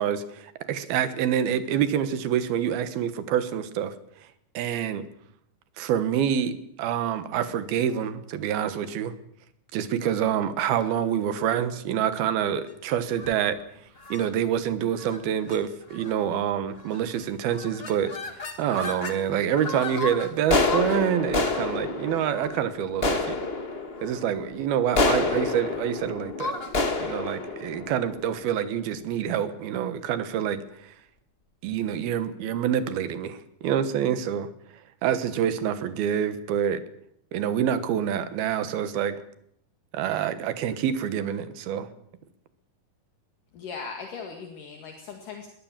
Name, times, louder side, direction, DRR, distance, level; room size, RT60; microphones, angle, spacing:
voice 1, 0.0-4.0 4.5-5.0 5.8-9.1 9.7-13.6 14.1-23.4 24.0-26.5 27.0-30.9 31.6-34.5 35.0-36.8 37.3-39.2 39.9-41.9, right 9 dB, 85° right, 12 dB, 3.2 m, -27 dB
sound 1, 13.1-13.5 14.0-14.3 15.0-15.2 15.5-15.6 15.9-16.3 16.9-17.2 17.5-19.2 19.6-28.7, left 3 dB, 50° left, 0.7 m, -29 dB
voice 2, 43.5-45.5, left 5 dB, 65° left, 3 dB, 3.4 m, -38 dB
21.5 x 17.0 x 7.4 m, 0.71 s
omnidirectional pair, 4.3 m